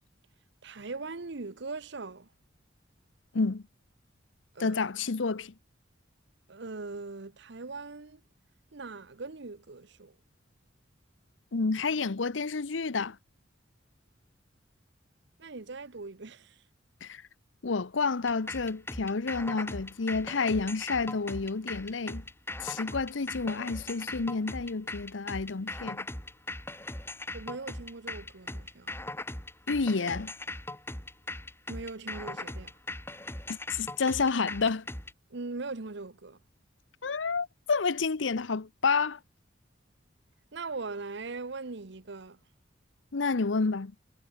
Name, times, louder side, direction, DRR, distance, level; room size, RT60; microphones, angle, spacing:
voice 1, 0.6-2.3 4.5-4.8 6.5-8.2 8.7-10.1 15.4-16.6 27.3-28.9 31.7-32.7 35.3-36.4 40.5-42.4, right 3 dB, 65° right, 1.0 m, -40 dB
voice 2, 4.6-5.5 11.5-13.2 17.0-17.2 17.6-22.2 22.6-26.1 29.7-30.3 33.5-34.9 37.0-39.2 43.1-43.9, left 4 dB, 75° left, 0.8 m, -29 dB
sound 1, 18.3-35.1, left 2 dB, 15° left, 2.8 m, -39 dB
head